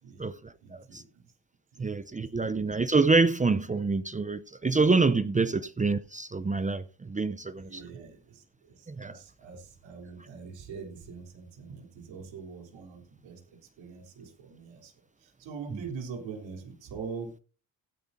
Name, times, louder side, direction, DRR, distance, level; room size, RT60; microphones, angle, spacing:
voice 1, 0.0-1.3 1.7-2.0 2.3-2.5 5.5-5.6 7.6-13.4 13.8-14.9 15.2-17.3, right 5 dB, 85° right, 3.6 m, -43 dB
voice 2, 1.8-6.8 7.1-7.8 9.0-9.1, right 3 dB, 20° right, 0.6 m, -26 dB
16.5 x 10.0 x 2.7 m
cardioid pair, 75°, 44 cm